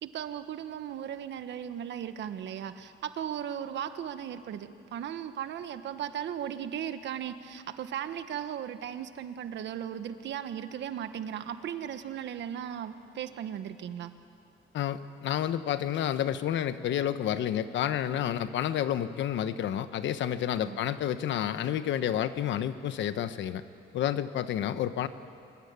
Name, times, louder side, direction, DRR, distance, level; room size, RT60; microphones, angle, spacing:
voice 1, 0.0-14.1 20.7-20.8, right 9 dB, 65° right, 10 dB, 1.4 m, -37 dB
voice 2, 14.7-23.6 23.9-25.1, left 10 dB, 65° left, 11 dB, 1.1 m, -30 dB
24.5 x 23.5 x 9.7 m, 2.5 s
cardioid pair, 165°, 20 cm